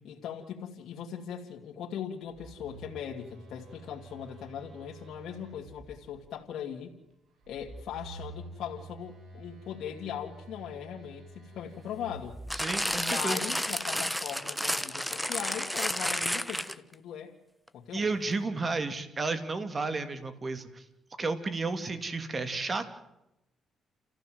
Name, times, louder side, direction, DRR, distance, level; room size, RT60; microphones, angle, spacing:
voice 1, 0.0-6.9 7.5-12.4 13.0-17.3 17.7-18.1, left 9 dB, 70° left, -1 dB, 2.3 m, -39 dB
Telephone, 2.2-6.3 7.4-13.1, right 3 dB, 65° right, 6.6 m, -49 dB
sound 1, 12.5-16.9 17.7-17.8, equal, ahead, 1.1 m, -31 dB
voice 2, 12.5-13.5 17.9-20.8 21.2-22.9, right 3 dB, 30° right, 10 dB, 2.5 m, -32 dB
29.5 x 15.0 x 7.7 m, 0.91 s
cardioid pair, 90°, 0 cm